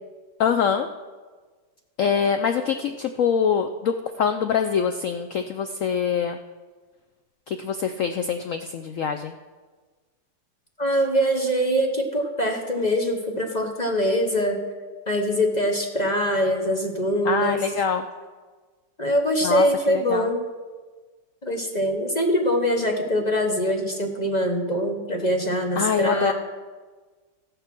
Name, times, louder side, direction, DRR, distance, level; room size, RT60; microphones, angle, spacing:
voice 1, 0.4-0.9 2.0-6.4 7.5-9.3 17.2-18.0 19.4-20.3 25.8-26.3, left 7 dB, 75° left, 7 dB, 0.7 m, -24 dB
voice 2, 10.8-14.6 15.1-17.6 19.0-20.4 21.4-26.3, equal, 30° left, 3 dB, 0.9 m, -23 dB
14.5 x 6.6 x 6.0 m, 1.4 s
omnidirectional pair, 1.9 m